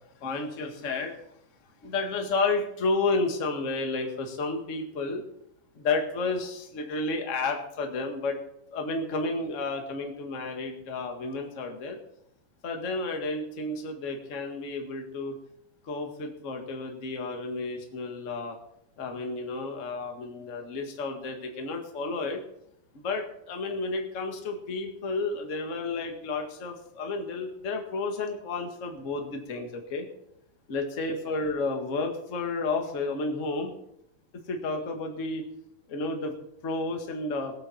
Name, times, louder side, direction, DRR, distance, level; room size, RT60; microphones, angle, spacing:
voice 1, 0.2-1.1 1.8-5.2 5.8-8.4 8.7-12.0 12.6-15.3 15.9-18.6 19.0-22.4 22.9-30.1 30.7-33.7 34.5-35.4 35.9-36.3 36.6-37.5, left 3 dB, 45° left, 3 dB, 1.0 m, -31 dB
20.5 x 8.6 x 4.3 m, 0.76 s
omnidirectional pair, 4.4 m